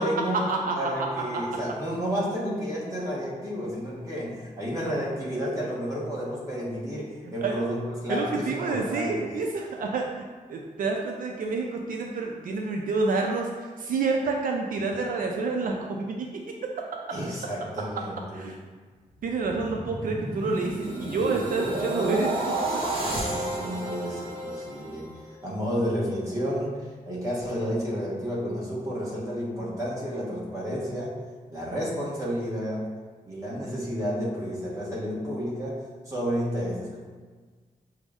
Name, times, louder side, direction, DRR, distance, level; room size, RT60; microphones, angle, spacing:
voice 1, 0.0-0.4 0.7-9.3 17.1-18.5 23.3-25.1 25.4-31.1 31.5-32.9 33.3-37.0, equal, 20° right, -6 dB, 1.0 m, -31 dB
voice 2, 7.2-7.5 8.1-16.3 16.6-16.9 18.3-18.6 19.2-22.8, right 3 dB, 75° right, 1 dB, 0.4 m, -28 dB
sound 1, 19.2-25.4 25.9-26.1, right 2 dB, 40° right, 0.9 m, -31 dB
6.1 x 2.1 x 3.5 m, 1.5 s
wide cardioid pair, 175°, 15 cm